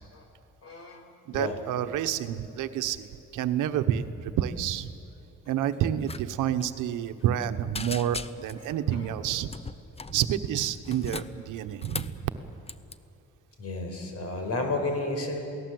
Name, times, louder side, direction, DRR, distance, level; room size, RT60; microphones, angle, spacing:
voice 1, 0.6-1.1 1.3-1.6 8.6-8.7 9.1-9.2 13.6-15.4, left 2 dB, 55° left, 4 dB, 5.2 m, -32 dB
voice 2, 1.3-4.9 5.5-9.5 10.1-12.2, right 10 dB, 90° right, 9 dB, 1.1 m, -29 dB
sound 1, 6.0-6.2 6.5-6.7 7.1-7.5 7.7-8.7 9.5-10.2 10.8-12.2 12.7-13.0, left 4 dB, 20° left, 0.8 m, -38 dB
28.0 x 18.0 x 7.8 m, 2.6 s
cardioid pair, 90°, 30 cm